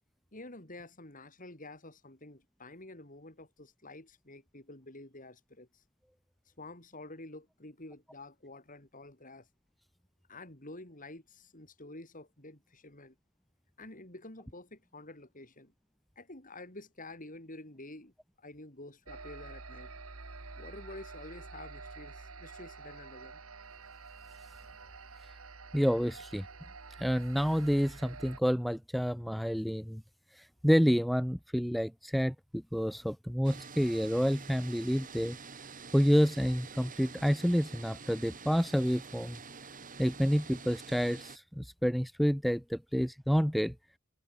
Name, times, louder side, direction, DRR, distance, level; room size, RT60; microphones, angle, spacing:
voice 1, 0.3-5.8 6.6-9.5 10.3-13.1 13.8-15.7 16.1-19.9 20.5-23.4, left 2 dB, 40° left, 5.2 m, -49 dB
sound 1, 19.1-28.4, right 4 dB, 75° right, 2.1 m, -48 dB
voice 2, 25.7-26.5 27.0-30.0 30.4-32.3 32.7-35.4 35.9-39.4 40.0-43.7, equal, ahead, 0.6 m, -29 dB
sound 2, 33.4-41.4, right 5 dB, 40° right, 2.8 m, -48 dB
head